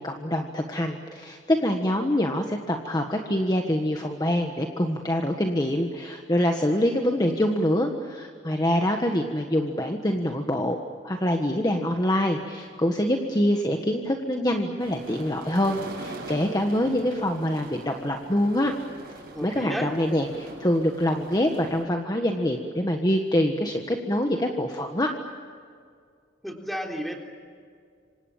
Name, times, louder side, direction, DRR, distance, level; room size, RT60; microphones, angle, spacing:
voice 1, 0.0-10.8 11.0-18.7 19.4-25.1, left 1 dB, 20° left, 3 dB, 1.5 m, -25 dB
sound 1, 14.8-21.8, right 2 dB, 50° right, 7.3 m, -42 dB
voice 2, 19.3-19.9 26.4-27.2, equal, ahead, 1 dB, 3.5 m, -32 dB
28.0 x 25.0 x 7.4 m, 2.1 s
head